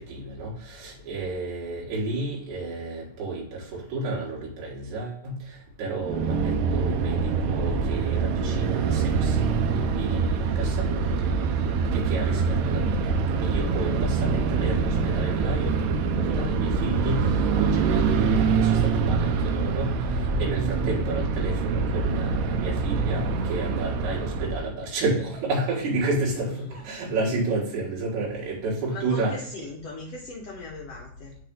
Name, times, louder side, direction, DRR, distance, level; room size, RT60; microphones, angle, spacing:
voice 1, 0.0-11.3 11.9-13.2 13.4-29.4, right 2 dB, 60° right, -5 dB, 3.0 m, -31 dB
sound 1, 6.0-24.8, right 5 dB, 80° right, 2.0 m, -25 dB
voice 2, 28.9-31.4, left 2 dB, 70° left, -1 dB, 1.6 m, -39 dB
6.0 x 3.4 x 5.1 m, 0.64 s
omnidirectional pair, 4.1 m